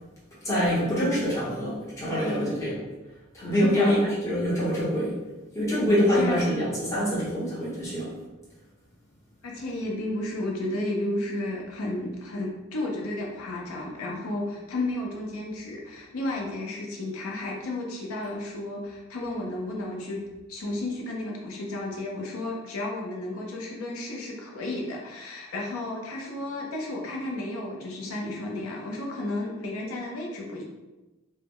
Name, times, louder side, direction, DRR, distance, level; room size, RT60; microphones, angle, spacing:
voice 1, 0.4-2.8 3.3-5.2 5.5-8.1, equal, 15° left, -9 dB, 0.8 m, -25 dB
voice 2, 2.1-2.5 3.5-4.0 6.1-6.5 9.4-20.2 20.5-30.6, left 2 dB, 90° left, -1 dB, 0.5 m, -32 dB
2.0 x 2.0 x 3.5 m, 1.1 s
head